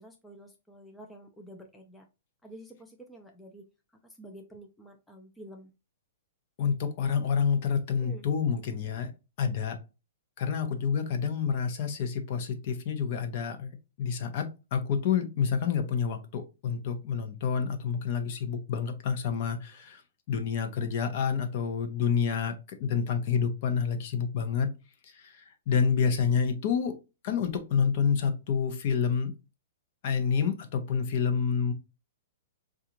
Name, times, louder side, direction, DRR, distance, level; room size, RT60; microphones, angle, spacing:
voice 1, 0.0-2.1 2.4-3.7 4.0-5.7 8.0-8.2, right 1 dB, 5° left, 0.4 m, -49 dB
voice 2, 6.6-9.1 9.4-9.8 10.4-20.0 20.3-24.7 25.0-27.0 27.2-29.3 30.0-31.7, left 6 dB, 45° left, 0.7 m, -28 dB
3.7 x 2.4 x 2.9 m
hypercardioid pair, 155°, 0 cm